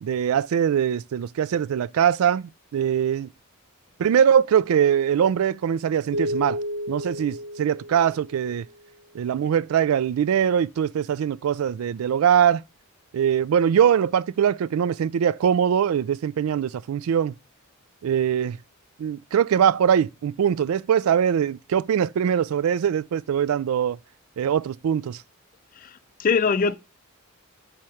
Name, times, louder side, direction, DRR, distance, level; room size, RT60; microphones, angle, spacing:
voice 1, 0.0-3.3 4.0-6.6 6.9-8.7 9.1-12.6 13.1-17.3 18.0-18.6 19.0-24.0 24.4-25.2, right 8 dB, 75° right, 0.3 m, -22 dB
sound 1, 6.1-8.7, equal, 55° right, 1.3 m, -31 dB
voice 2, 25.8-26.7, left 5 dB, 40° left, 0.4 m, -23 dB
7.5 x 2.9 x 4.9 m
head